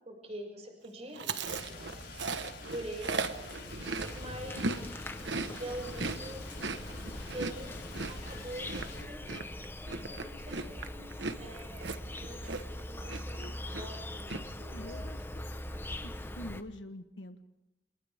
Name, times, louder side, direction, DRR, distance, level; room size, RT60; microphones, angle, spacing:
voice 1, 0.0-2.3 2.7-3.2 4.1-4.8 5.2-5.3 5.6-6.5 7.3-7.8 8.1-9.3 10.1-11.9 12.2-12.5 12.9-15.0, right 1 dB, 35° right, 2 dB, 6.1 m, -45 dB
Chewing mastication, 1.2-4.8 5.1-12.8 13.1-13.4 13.7-14.4, right 3 dB, 65° right, 1.3 m, -37 dB
Rain, 1.4-9.0, left 3 dB, 60° left, 6.5 m, -47 dB
Insect, 3.4-16.6, left 1 dB, 10° left, 1.0 m, -42 dB
voice 2, 14.6-15.5 16.0-17.6, left 1 dB, 75° left, 8 dB, 1.3 m, -46 dB
29.5 x 28.0 x 3.6 m, 0.91 s
head